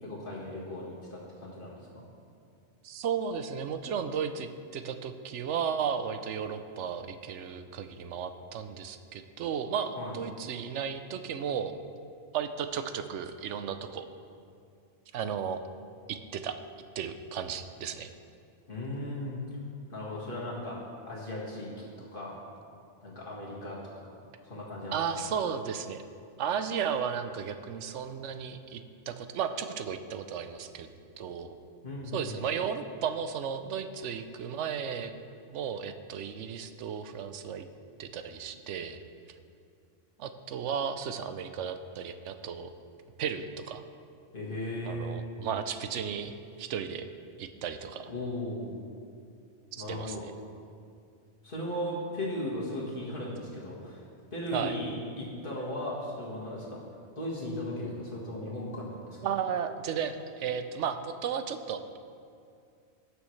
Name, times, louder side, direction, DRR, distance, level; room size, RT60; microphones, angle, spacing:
voice 1, 0.0-2.0 10.0-10.2 18.7-19.4 19.9-20.8 21.0-22.4 23.0-24.1 24.4-25.2 31.8-32.3 44.3-45.2 48.1-48.9 49.8-50.2 51.4-54.0 54.3-56.8 57.2-59.2, left 1 dB, 45° left, -5 dB, 1.8 m, -37 dB
voice 2, 2.8-11.7 12.3-14.1 15.1-15.6 16.1-16.5 17.0-18.1 24.9-26.0 26.4-30.9 31.2-31.6 32.1-35.1 35.5-37.7 38.0-39.0 40.2-42.7 43.2-43.8 44.8-47.1 47.4-48.1 49.7-50.3 54.5-54.7 59.2-62.0, right 7 dB, 80° right, 9 dB, 0.9 m, -34 dB
18.5 x 6.4 x 3.2 m, 2.4 s
omnidirectional pair, 1.2 m